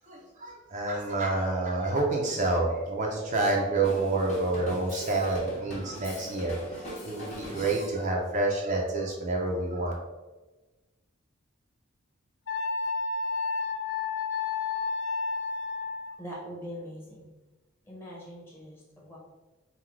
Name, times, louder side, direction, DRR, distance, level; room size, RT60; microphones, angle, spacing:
voice 1, 0.1-9.9, right 2 dB, 40° right, -1 dB, 0.6 m, -28 dB
Drum kit, 3.8-8.0, left 1 dB, 35° left, 1.2 m, -41 dB
Wind instrument woodwind instrument, 12.5-16.3, left 4 dB, 60° left, 0.4 m, -31 dB
voice 2, 16.1-17.3 17.8-19.2, equal, 10° left, -4 dB, 1.0 m, -42 dB
3.8 x 2.3 x 4.5 m, 1.2 s
head